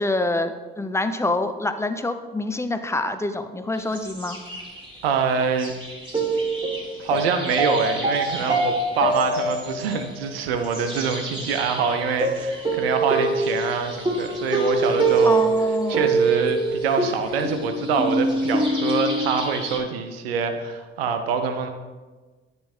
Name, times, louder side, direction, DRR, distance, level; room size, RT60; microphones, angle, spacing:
voice 1, 0.0-4.4 15.2-16.0, left 2 dB, 10° left, 9 dB, 0.6 m, -26 dB
sound 1, 3.8-5.0 5.6-19.8, right 2 dB, 15° right, 1.9 m, -25 dB
voice 2, 5.0-5.7 7.0-15.4 15.9-21.7, right 6 dB, 90° right, 7 dB, 0.6 m, -25 dB
10.0 x 3.4 x 4.3 m, 1.3 s
hypercardioid pair, 55°, 29 cm